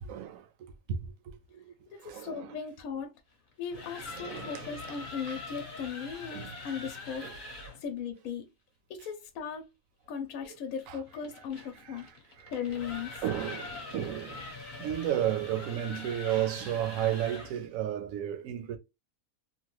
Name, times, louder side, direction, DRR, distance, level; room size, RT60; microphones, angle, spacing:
voice 1, 0.0-1.7 2.0-2.5 4.2-4.7 5.3-5.4 6.3-6.6 7.2-7.3 10.9-11.0 11.8-12.1 12.4-12.5 13.2-14.4 14.8-18.8, right 11 dB, 70° right, 1.0 m, -33 dB
voice 2, 1.9-3.1 3.6-7.3 7.8-8.5 8.9-9.7 10.1-12.1 12.5-13.2, left 7 dB, 75° left, 1.0 m, -37 dB
sound 1, 3.5-7.8 10.4-17.6, left 3 dB, 40° left, 0.9 m, -44 dB
3.0 x 2.2 x 3.0 m
omnidirectional pair, 1.5 m